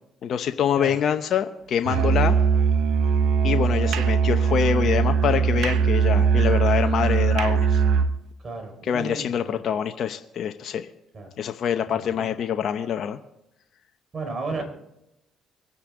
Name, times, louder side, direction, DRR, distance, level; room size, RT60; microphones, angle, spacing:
voice 1, 0.2-2.4 3.4-7.8 8.8-10.9 11.4-13.2, left 8 dB, 60° left, 7 dB, 0.8 m, -25 dB
Musical instrument, 1.8-8.2, right 6 dB, 75° right, 0.9 m, -20 dB
voice 2, 8.4-9.7 11.1-11.3 11.9-12.3 14.1-14.6, right 3 dB, 40° right, 4 dB, 4.5 m, -34 dB
24.0 x 9.8 x 3.8 m, 0.86 s
supercardioid pair, 75°, 0 cm